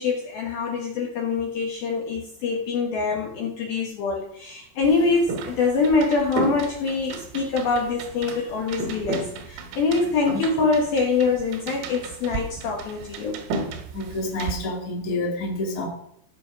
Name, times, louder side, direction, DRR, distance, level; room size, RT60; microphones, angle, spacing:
voice 1, 0.0-13.4, left 4 dB, 65° left, -1 dB, 2.5 m, -24 dB
sound 1, 4.8-14.5, right 3 dB, 90° right, 4.0 m, -34 dB
voice 2, 13.9-15.9, left 2 dB, 35° left, -2 dB, 1.4 m, -28 dB
15.5 x 5.7 x 5.2 m, 0.71 s
omnidirectional pair, 6.0 m